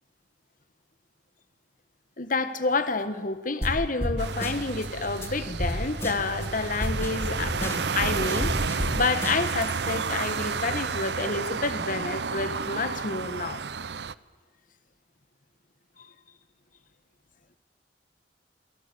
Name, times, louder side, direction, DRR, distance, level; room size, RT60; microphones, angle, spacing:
voice 1, 2.2-13.6 16.0-16.1, left 3 dB, 45° left, 11 dB, 1.7 m, -29 dB
sound 1, 3.6-3.7 4.0-4.1 4.4-4.9 5.2-5.3 5.6-5.7 6.0-6.5 6.8-8.9 9.2-9.7, equal, 15° left, 4.5 m, -30 dB
sound 2, 4.2-14.1, right 5 dB, 65° right, 0.8 m, -31 dB
29.0 x 22.5 x 8.7 m, 1.4 s
head